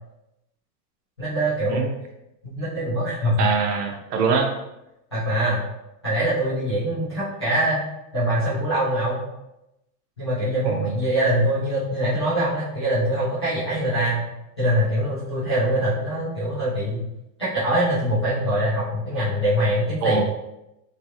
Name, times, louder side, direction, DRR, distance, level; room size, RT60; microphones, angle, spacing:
voice 1, 1.2-1.9 2.4-3.5 5.1-5.6 6.0-7.8 8.1-9.2 10.2-14.3 14.6-17.0 17.4-20.2, right 1 dB, 20° left, -15 dB, 0.4 m, -23 dB
voice 2, 3.4-4.5 10.6-11.0 20.0-20.2, right 5 dB, 70° right, 3 dB, 0.8 m, -23 dB
3.1 x 2.7 x 2.4 m, 0.89 s
supercardioid pair, 180°, 50 cm